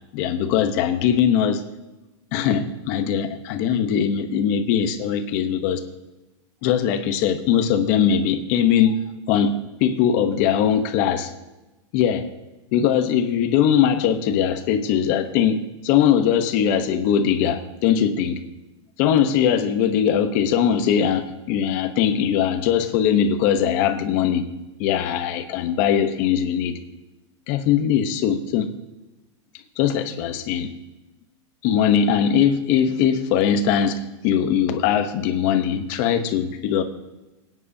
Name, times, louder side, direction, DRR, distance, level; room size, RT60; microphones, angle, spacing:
voice 1, 0.1-1.6 2.3-5.8 6.6-9.0 9.3-9.5 9.8-11.3 11.9-12.3 12.7-18.4 19.0-24.4 24.8-26.8 27.5-28.7 29.8-30.7 31.6-36.8, left 8 dB, 35° left, 8 dB, 0.9 m, -20 dB
22.5 x 9.3 x 2.8 m, 1.0 s
supercardioid pair, 170°, 16 cm